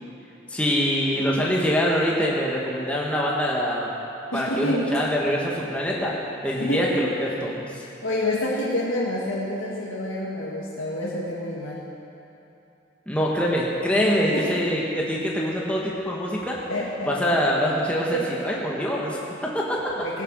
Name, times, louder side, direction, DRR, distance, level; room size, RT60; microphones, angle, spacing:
voice 1, 0.5-3.9 4.3-6.2 6.4-7.8 13.1-16.6 17.1-19.9, equal, 5° left, -4 dB, 1.6 m, -24 dB
voice 2, 4.3-4.9 6.6-6.8 8.0-11.9 14.3-14.5 16.7-17.1 18.1-18.3 20.0-20.2, left 1 dB, 85° left, -5 dB, 1.9 m, -28 dB
16.5 x 10.5 x 6.2 m, 2.9 s
head